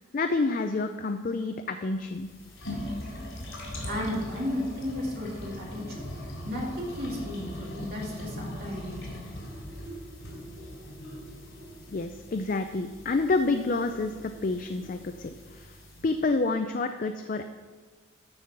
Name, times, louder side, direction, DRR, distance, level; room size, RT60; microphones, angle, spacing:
voice 1, 0.1-2.3 11.9-15.7 16.0-17.5, left 3 dB, 40° left, 7 dB, 0.4 m, -28 dB
sound 1, 2.0-16.3, equal, 80° left, 3.5 m, -41 dB
voice 2, 3.9-9.2, left 1 dB, 50° right, -4 dB, 2.3 m, -34 dB
12.5 x 4.7 x 5.8 m, 1.4 s
head